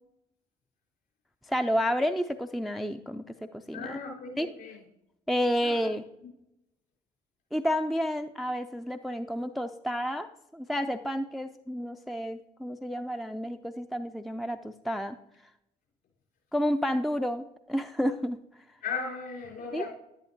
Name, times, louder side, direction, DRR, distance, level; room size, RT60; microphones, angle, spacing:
voice 1, 1.5-4.0 4.4-4.5 5.3-6.0 7.5-15.2 16.5-18.4 19.7-19.9, equal, ahead, 8 dB, 0.4 m, -30 dB
voice 2, 3.7-4.8 5.6-5.8 18.8-19.9, left 5 dB, 55° left, -3 dB, 4.3 m, -36 dB
11.0 x 10.5 x 2.9 m, 0.84 s
figure-of-eight pair, 50°, 20 cm